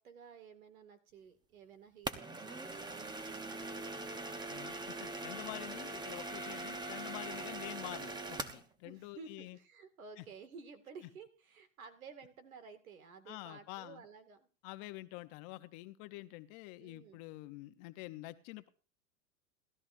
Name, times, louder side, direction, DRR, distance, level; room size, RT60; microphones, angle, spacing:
voice 1, 0.0-3.9 8.8-14.5 16.8-17.2, right 5 dB, 90° right, 10 dB, 2.3 m, -54 dB
sound 1, 2.1-8.7, right 2 dB, 10° right, 0.9 m, -42 dB
voice 2, 4.5-9.6 10.2-10.3 13.3-14.0 14.6-18.7, left 19 dB, 45° left, 10 dB, 0.8 m, -47 dB
19.0 x 13.0 x 2.7 m, 0.35 s
hypercardioid pair, 125°, 41 cm